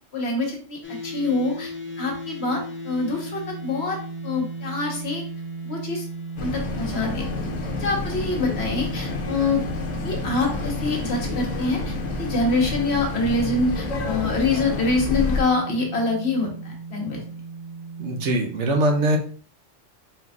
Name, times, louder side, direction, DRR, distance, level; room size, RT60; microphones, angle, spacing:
voice 1, 0.1-1.7 2.0-4.0 4.2-5.2 5.6-6.1 6.4-7.2 7.8-9.6 10.0-17.2, left 3 dB, 60° left, 0 dB, 1.3 m, -25 dB
sound 1, 0.8-18.3, right 3 dB, 20° left, 0.3 m, -36 dB
sound 2, 6.4-15.4, left 3 dB, 85° left, 1.1 m, -29 dB
voice 2, 18.0-19.2, right 1 dB, 70° right, 4 dB, 1.0 m, -22 dB
4.2 x 3.8 x 2.3 m, 0.42 s
omnidirectional pair, 1.3 m